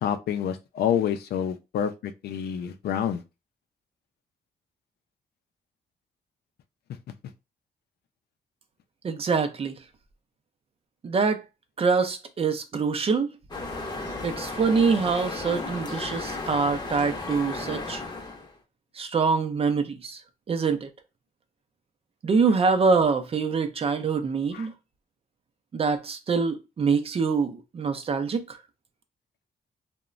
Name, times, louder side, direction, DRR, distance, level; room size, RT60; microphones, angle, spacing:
voice 1, 0.0-3.2 24.5-24.7, left 9 dB, 85° left, 0.4 m, -28 dB
voice 2, 9.0-9.8 11.0-11.4 11.8-13.3 14.2-18.0 19.0-20.2 20.5-20.9 22.2-24.7 25.7-28.6, right 5 dB, 35° right, 0.5 m, -25 dB
sound 1, 13.5-18.5, left 3 dB, 25° left, 0.7 m, -34 dB
2.9 x 2.1 x 2.4 m
cardioid pair, 120°, 16 cm